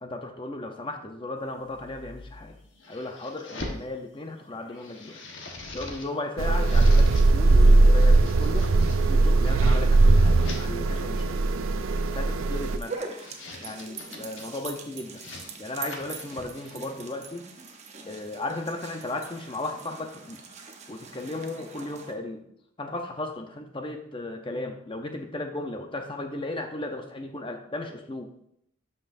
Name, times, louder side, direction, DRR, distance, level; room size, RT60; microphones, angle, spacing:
voice 1, 0.0-2.5 2.9-5.2 5.7-8.7 9.1-11.4 12.1-13.0 13.6-15.2 15.6-17.4 18.0-20.4 20.9-22.4 22.8-28.3, left 2 dB, 25° left, 4 dB, 0.8 m, -35 dB
sound 1, 1.6-3.8 4.4-6.1 6.4-7.3 7.8-9.0 9.6-10.6 11.7-12.1 12.9-14.6 15.0-16.9, left 2 dB, 70° left, 1.3 m, -43 dB
sound 2, 6.4-12.8, right 2 dB, 90° right, 0.5 m, -19 dB
sound 3, 12.5-22.1, right 4 dB, 35° right, 0.8 m, -42 dB
12.0 x 5.5 x 2.7 m, 0.72 s
head